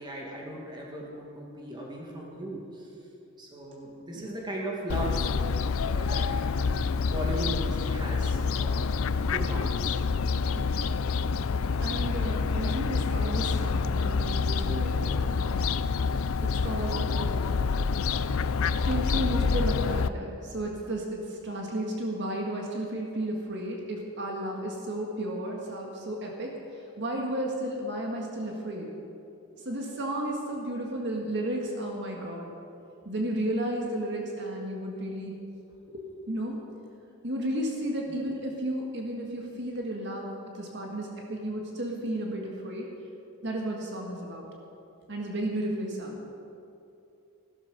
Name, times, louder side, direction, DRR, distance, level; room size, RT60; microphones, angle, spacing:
voice 1, 0.0-2.9 3.4-5.3 5.8-10.0 14.4-14.5 38.1-38.2, right 1 dB, 20° right, -2 dB, 2.1 m, -38 dB
Fowl, 4.9-20.1, left 5 dB, 65° left, 0.4 m, -27 dB
voice 2, 10.5-10.9 11.8-15.6 16.4-17.4 18.8-26.5 27.0-28.9 29.6-32.5 33.1-35.3 35.9-36.6 37.2-40.3 40.5-42.9 43.4-44.5 45.1-46.2, right 1 dB, 50° right, 0 dB, 1.8 m, -33 dB
16.0 x 12.5 x 5.4 m, 2.7 s
head